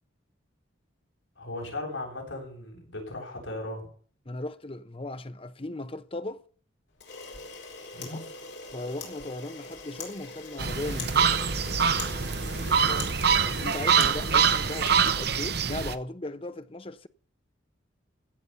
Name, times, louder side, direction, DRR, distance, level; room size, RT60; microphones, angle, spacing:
voice 1, 1.4-3.9 7.9-8.3 12.6-13.0, left 2 dB, 75° left, 8.0 m, -37 dB
voice 2, 4.3-6.4 8.0-8.3 8.7-11.4 13.4-17.1, left 2 dB, 25° left, 0.8 m, -37 dB
Camera, 7.0-15.7, left 4 dB, 60° left, 4.4 m, -42 dB
sound 1, 10.6-15.9, right 6 dB, 50° right, 0.9 m, -24 dB
16.5 x 7.2 x 7.0 m
head